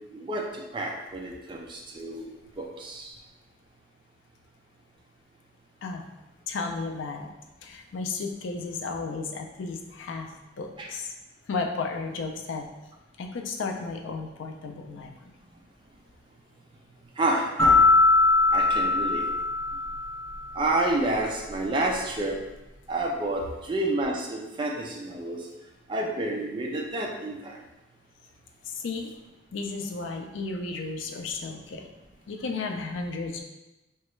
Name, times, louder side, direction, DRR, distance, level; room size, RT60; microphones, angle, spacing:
voice 1, 0.1-2.3 2.6-3.1 10.8-10.9 17.2-17.8 18.5-19.2 20.5-22.4 22.9-25.5 25.9-27.6, right 2 dB, 25° right, 0 dB, 0.3 m, -29 dB
voice 2, 6.5-7.3 7.6-10.3 10.6-11.1 11.5-12.6 13.2-15.3 28.7-29.1 29.5-31.9 32.3-33.4, left 4 dB, 75° left, 4 dB, 0.4 m, -33 dB
sound 1, 17.6-20.4, left 3 dB, 10° left, 0.7 m, -21 dB
3.0 x 2.3 x 3.0 m, 1.0 s
head